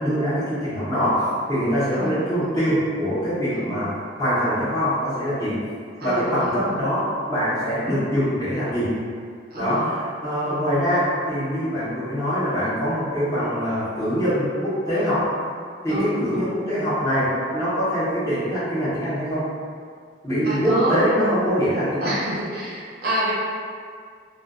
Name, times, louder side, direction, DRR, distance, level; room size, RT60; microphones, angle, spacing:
voice 1, 0.0-3.9 4.2-5.6 6.0-9.0 9.5-10.0 10.2-15.3 15.8-19.5 20.2-22.1, equal, 20° left, -12 dB, 0.8 m, -23 dB
voice 2, 1.9-2.6 3.5-3.9 6.0-6.8 9.5-9.9 10.4-10.7 15.9-16.5 20.4-21.0 22.0-23.3, equal, 55° right, -6 dB, 0.5 m, -28 dB
2.4 x 2.2 x 2.4 m, 2.1 s
head